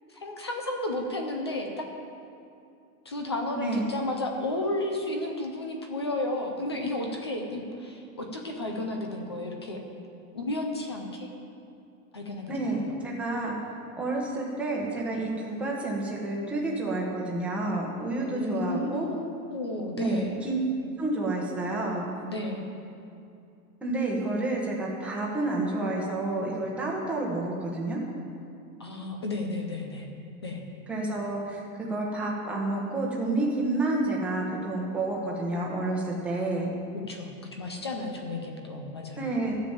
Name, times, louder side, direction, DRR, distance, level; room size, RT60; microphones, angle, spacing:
voice 1, 0.1-1.9 3.1-9.9 10.3-11.3 12.1-12.9 18.3-20.4 22.3-22.6 28.8-30.1 30.4-30.6 37.1-39.3, left 2 dB, 20° left, 3 dB, 0.3 m, -33 dB
voice 2, 3.5-3.9 12.5-13.5 14.0-19.1 20.0-20.6 21.0-22.1 23.8-28.0 30.9-31.6 31.9-36.7 39.2-39.5, right 2 dB, 5° right, -4 dB, 1.1 m, -29 dB
12.0 x 7.1 x 8.8 m, 2.6 s
supercardioid pair, 175°, 44 cm